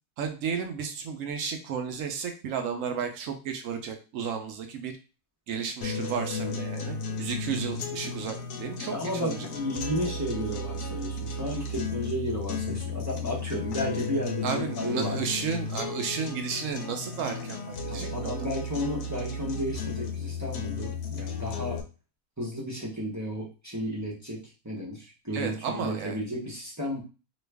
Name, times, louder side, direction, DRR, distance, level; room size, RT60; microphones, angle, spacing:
voice 1, 0.2-4.9 5.5-8.9 9.2-9.4 14.4-18.3 25.3-26.2, right 6 dB, 65° right, 5 dB, 0.9 m, -33 dB
sound 1, 5.8-21.8, left 3 dB, 90° left, 1.1 m, -34 dB
voice 2, 8.9-15.2 17.9-21.8 22.4-27.0, equal, 15° right, -5 dB, 0.6 m, -33 dB
3.0 x 2.4 x 3.3 m, 0.33 s
omnidirectional pair, 1.6 m